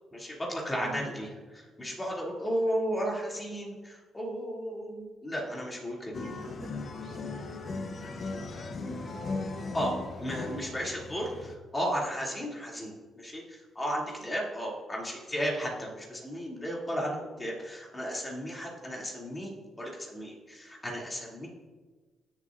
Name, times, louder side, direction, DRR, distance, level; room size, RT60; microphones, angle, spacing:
voice 1, 0.1-1.3 1.5-6.2 9.7-9.9 10.2-19.5 19.8-21.5, equal, 20° left, -3 dB, 2.7 m, -34 dB
voice 2, 0.8-1.1 5.9-8.7 14.1-14.3, right 2 dB, 65° right, -1 dB, 2.6 m, -50 dB
sound 1, 6.1-11.5, left 3 dB, 45° left, 0.9 m, -37 dB
16.0 x 7.3 x 2.6 m, 1.4 s
cardioid pair, 90°, 0 cm